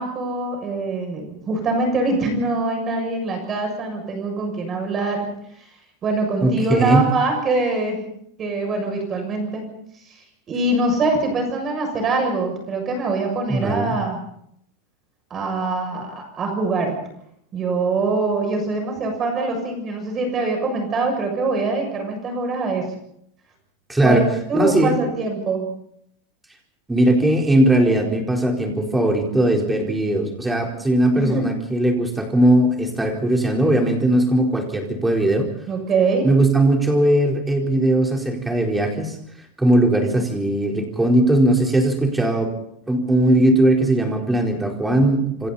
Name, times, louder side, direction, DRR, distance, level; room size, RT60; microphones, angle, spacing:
voice 1, 0.0-5.3 6.0-8.0 8.4-9.6 10.1-10.2 10.5-14.2 15.3-17.0 17.5-22.9 24.0-24.2 24.5-25.7 31.2-31.5 35.7-36.3, right 3 dB, 20° right, 4 dB, 7.3 m, -23 dB
voice 2, 6.4-7.1 13.5-13.9 23.9-24.3 24.5-25.0 26.9-35.5 36.2-39.2 39.6-42.5 42.9-45.5, right 1 dB, 5° right, 1 dB, 4.4 m, -19 dB
27.5 x 27.0 x 4.3 m, 0.71 s
supercardioid pair, 160°, 0 cm